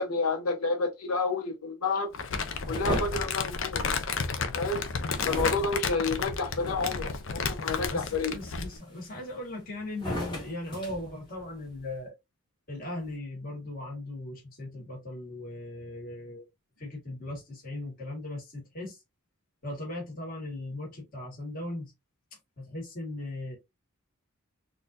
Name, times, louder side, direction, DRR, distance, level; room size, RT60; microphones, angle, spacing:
voice 1, 0.0-2.1 2.6-3.8 4.5-4.9 5.2-8.3, left 3 dB, 80° left, 1.0 m, -30 dB
Crumpling crinkling, 2.1-8.8, left 5 dB, 60° left, 0.6 m, -32 dB
sound 1, 2.6-4.3 5.1-7.2 7.7-8.1 8.7-9.5 9.9-11.8, equal, 20° left, 1.4 m, -37 dB
voice 2, 7.9-12.1 12.7-16.5 16.8-19.0 19.6-21.9 22.6-23.6, left 1 dB, 40° left, 1.7 m, -38 dB
4.0 x 2.6 x 2.6 m
head